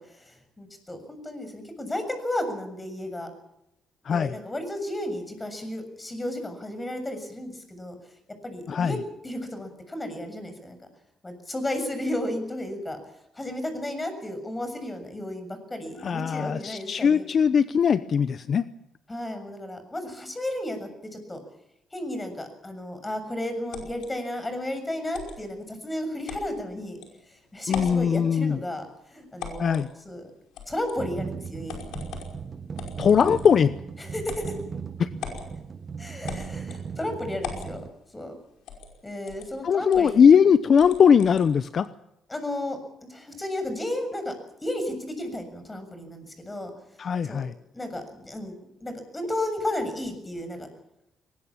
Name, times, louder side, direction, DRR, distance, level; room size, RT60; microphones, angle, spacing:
voice 1, 0.0-3.3 4.1-8.0 8.4-9.0 9.2-10.8 11.2-13.0 13.4-17.2 19.1-21.4 21.9-27.0 27.5-30.2 30.7-31.9 34.0-34.6 36.0-37.8 38.1-38.4 39.0-40.2 42.3-46.7 47.3-47.4 47.7-48.5 48.8-50.7, left 1 dB, 15° left, 8 dB, 7.0 m, -33 dB
voice 2, 4.0-4.4 8.7-9.0 16.0-18.6 27.7-28.6 29.6-29.9 33.0-33.7 35.0-35.1 39.6-41.9 47.0-47.5, left 7 dB, 50° left, 13 dB, 0.8 m, -20 dB
sound 1, 23.7-24.1 25.1-25.4 26.3-26.5 27.0-27.1 27.6-28.0 29.4-29.9 30.5-31.0 31.7-32.3 32.8-33.6 34.2-34.6 35.2-35.5 36.3-36.8 37.4-37.7 38.7-38.9 39.3-39.5 39.9-40.1 40.8-41.5, left 7 dB, 85° left, 5.4 m, -38 dB
sound 2, 31.0-37.9, right 6 dB, 40° right, 1.4 m, -37 dB
22.0 x 20.0 x 7.3 m, 0.83 s
cardioid pair, 90°, 0 cm